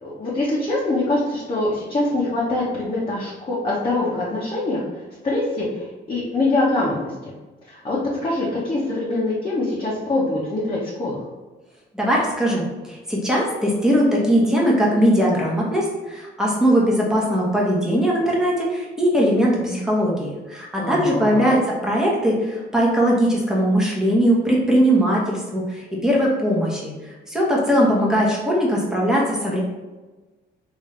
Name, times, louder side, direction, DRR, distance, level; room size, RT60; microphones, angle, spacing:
voice 1, 0.0-7.3 7.7-11.2 20.8-21.6, left 2 dB, 25° left, -7 dB, 1.0 m, -24 dB
voice 2, 11.9-21.6 21.8-29.6, equal, 5° right, -4 dB, 1.1 m, -20 dB
3.4 x 2.7 x 3.3 m, 1.2 s
cardioid pair, 90°, 20 cm